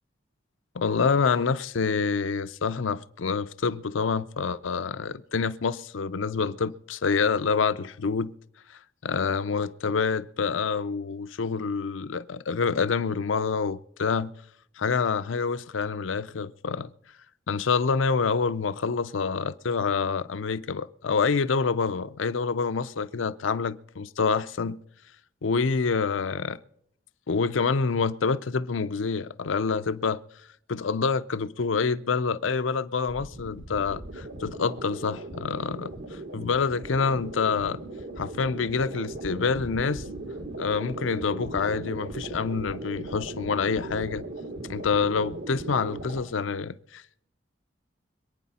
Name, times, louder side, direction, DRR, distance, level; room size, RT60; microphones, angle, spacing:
voice 1, 0.7-8.3 9.0-14.3 14.8-16.9 17.5-24.8 25.4-26.6 27.3-30.2 30.7-37.8 38.2-40.0 40.6-44.2 44.7-47.2, left 5 dB, 85° left, 0.6 m, -27 dB
sound 1, 33.1-46.2, right 2 dB, 80° right, 2.0 m, -38 dB
26.0 x 9.4 x 4.2 m
head